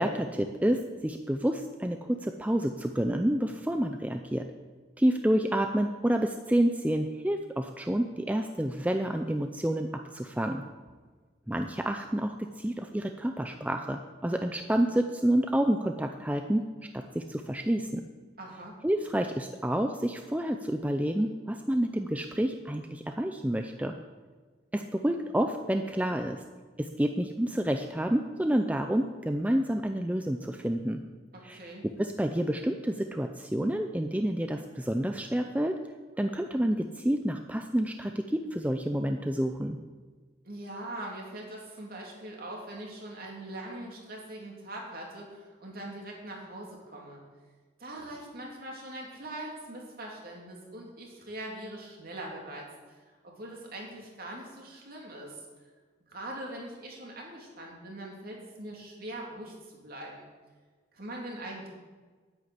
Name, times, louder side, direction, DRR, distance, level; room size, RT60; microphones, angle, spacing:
voice 1, 0.0-4.4 5.0-10.6 11.5-16.6 16.9-18.0 18.8-23.9 24.7-26.4 26.8-31.0 31.4-31.6 32.0-35.8 36.2-39.8, right 1 dB, 10° right, 6 dB, 0.5 m, -29 dB
voice 2, 18.4-18.7 31.3-31.9 40.4-47.2 47.8-55.4 56.1-60.3 60.9-61.7, right 1 dB, 50° right, -1 dB, 3.1 m, -42 dB
9.7 x 9.5 x 8.3 m, 1.4 s
head